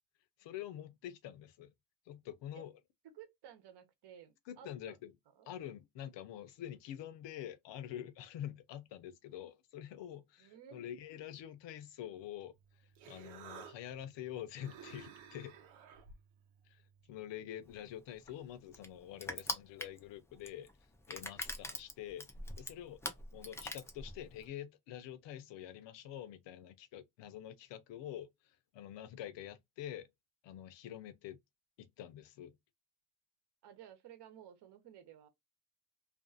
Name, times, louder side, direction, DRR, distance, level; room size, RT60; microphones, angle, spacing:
voice 1, 0.4-1.7 2.1-2.7 4.5-5.1 5.5-15.6 16.7-16.8 17.1-20.7 21.1-22.3 22.6-23.0 23.3-30.1 30.4-31.4 31.8-32.6, left 11 dB, 65° left, 0.7 m, -46 dB
voice 2, 3.1-5.0 5.3-5.5 10.4-10.8 19.3-19.8 33.6-35.3, right 9 dB, 55° right, 0.9 m, -55 dB
Human voice, 12.5-17.7, right 7 dB, 85° right, 0.8 m, -56 dB
Crushing, 17.7-24.5, left 1 dB, 5° left, 0.4 m, -43 dB
2.5 x 2.4 x 2.5 m
cardioid pair, 100°, 48 cm